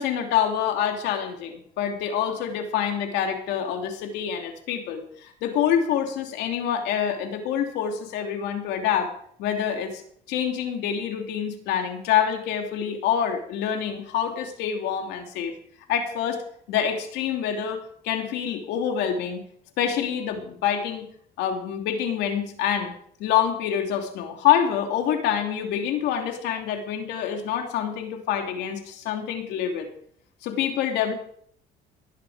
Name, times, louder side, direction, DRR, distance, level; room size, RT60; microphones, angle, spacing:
voice 1, 0.0-9.1 9.4-10.0 10.3-15.5 15.9-16.4 16.7-19.4 19.8-21.0 21.4-22.9 23.2-29.9 30.4-31.1, left 9 dB, 90° left, 4 dB, 2.9 m, -26 dB
19.0 x 11.5 x 5.0 m, 0.63 s
cardioid pair, 110°, 17 cm